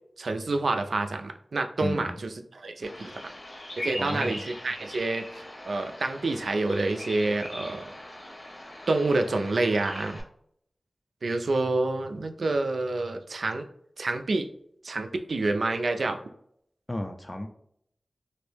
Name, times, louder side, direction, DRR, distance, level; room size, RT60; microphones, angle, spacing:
voice 1, 0.2-3.1 3.8-7.9 8.9-10.2 11.2-13.7 14.0-14.5 14.8-16.2, right 2 dB, 85° right, 6 dB, 0.3 m, -28 dB
voice 2, 1.8-2.2 4.0-4.4 16.9-17.5, left 1 dB, 20° left, 4 dB, 0.4 m, -32 dB
Bird vocalization bird call bird song, 2.8-10.2, left 1 dB, 50° left, 0.8 m, -41 dB
3.0 x 2.6 x 3.3 m, 0.69 s
wide cardioid pair, 60°, 0 cm